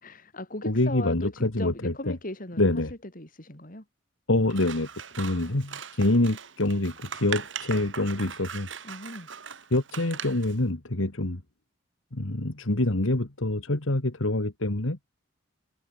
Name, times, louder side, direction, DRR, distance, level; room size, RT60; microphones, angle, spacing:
voice 1, 0.0-3.8 5.2-5.6 8.8-9.3, left 1 dB, 45° left, 4.5 m, -38 dB
voice 2, 0.7-2.2 2.6-2.9 4.3-4.9 5.2-8.7 9.7-11.4 12.1-15.0, left 1 dB, 85° left, 2.1 m, -26 dB
Scissors, 4.5-10.6, right 7 dB, 70° right, 2.3 m, -40 dB
head